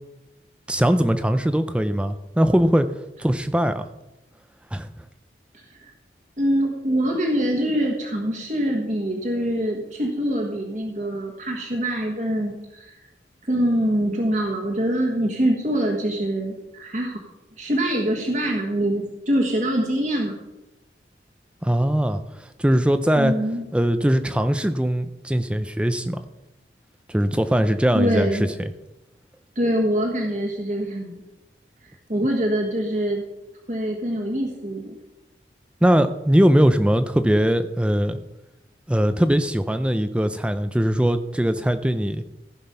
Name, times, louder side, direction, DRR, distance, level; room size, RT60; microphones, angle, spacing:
voice 1, 0.7-2.9 3.2-3.9 4.7-4.9 21.6-23.3 23.7-26.2 27.1-28.5 35.8-38.2 38.9-42.2, equal, 5° right, 10 dB, 0.4 m, -21 dB
voice 2, 6.4-13.0 13.4-17.2 17.6-20.4 23.2-23.6 27.9-28.5 29.5-31.1 32.1-33.2 33.7-34.9, equal, 40° right, 0 dB, 1.4 m, -24 dB
15.0 x 6.0 x 5.6 m, 0.95 s
head